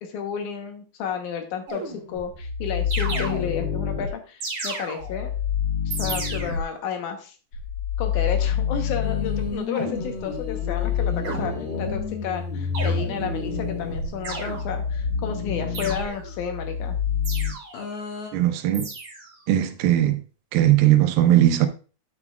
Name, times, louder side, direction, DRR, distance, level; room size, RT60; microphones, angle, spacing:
voice 1, 0.0-5.3 5.9-7.4 8.0-17.0, left 7 dB, 70° left, 2.2 m, -32 dB
sound 1, 1.7-2.3 2.9-3.8 4.4-5.3 5.9-6.8 9.7-10.2 11.2-12.0 12.7-13.4 14.2-15.0 15.7-16.4 17.2-17.9 18.7-19.4, right 3 dB, 45° right, 3.0 m, -34 dB
sound 2, 2.1-4.1 5.0-6.6 7.5-9.6 10.3-17.5, left 7 dB, 45° left, 2.6 m, -27 dB
sound 3, 9.0-15.0 17.7-18.3, left 4 dB, 90° left, 3.6 m, -36 dB
voice 2, 18.3-18.9 19.5-20.2 20.5-21.7, right 13 dB, 85° right, 2.6 m, -18 dB
11.0 x 6.0 x 2.3 m
omnidirectional pair, 4.2 m